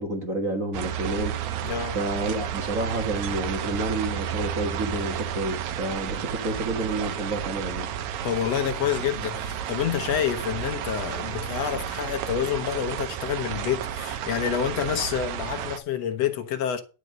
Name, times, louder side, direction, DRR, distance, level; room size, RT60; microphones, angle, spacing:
voice 1, 0.0-1.3 1.9-7.9, right 2 dB, 45° right, 1.1 m, -29 dB
sound 1, 0.7-15.8, right 9 dB, 75° right, 2.1 m, -32 dB
voice 2, 1.6-2.0 8.2-16.8, left 9 dB, 65° left, 2.0 m, -28 dB
10.5 x 5.3 x 6.5 m
omnidirectional pair, 3.5 m